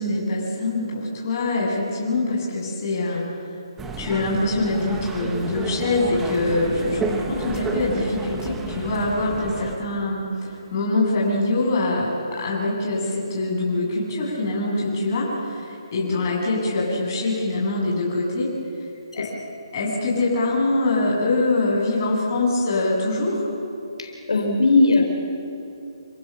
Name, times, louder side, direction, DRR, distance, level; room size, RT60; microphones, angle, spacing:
voice 1, 0.0-3.2 4.0-18.5 19.1-19.3 19.7-23.4, left 2 dB, 35° left, -4 dB, 7.5 m, -24 dB
sound 1, 3.8-9.8, right 3 dB, 5° right, 1.0 m, -31 dB
voice 2, 24.0-25.0, left 3 dB, 85° left, 2 dB, 4.2 m, -19 dB
29.0 x 16.0 x 7.4 m, 2.8 s
hypercardioid pair, 165°, 3 cm